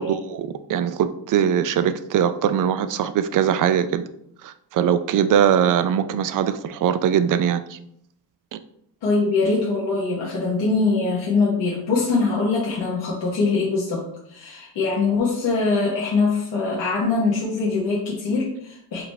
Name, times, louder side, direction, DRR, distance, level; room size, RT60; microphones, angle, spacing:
voice 1, 0.0-4.0 4.4-7.8 8.5-8.6, right 9 dB, 45° right, 11 dB, 0.4 m, -21 dB
voice 2, 9.0-19.0, left 3 dB, 70° left, -5 dB, 1.1 m, -23 dB
4.7 x 2.0 x 3.4 m, 0.71 s
supercardioid pair, 60°, 45 cm